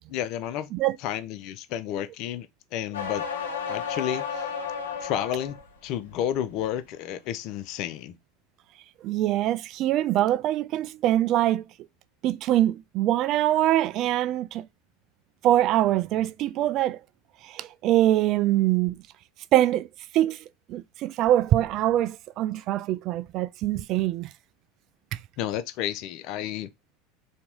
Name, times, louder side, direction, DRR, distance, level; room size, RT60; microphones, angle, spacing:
voice 1, 0.1-0.7 1.0-2.5 2.7-3.2 3.7-4.5 5.0-5.6 5.8-8.2 25.4-26.7, left 10 dB, 55° left, 0.5 m, -31 dB
sound 1, 2.9-5.6 6.1-6.6, left 6 dB, 80° left, 0.8 m, -32 dB
voice 2, 9.0-11.7 12.2-14.7 15.4-17.0 17.4-19.0 19.5-19.9 20.1-20.4 20.7-24.3 25.1-25.2, right 13 dB, 50° right, 0.3 m, -23 dB
2.8 x 2.7 x 3.6 m
hypercardioid pair, 80°, 0 cm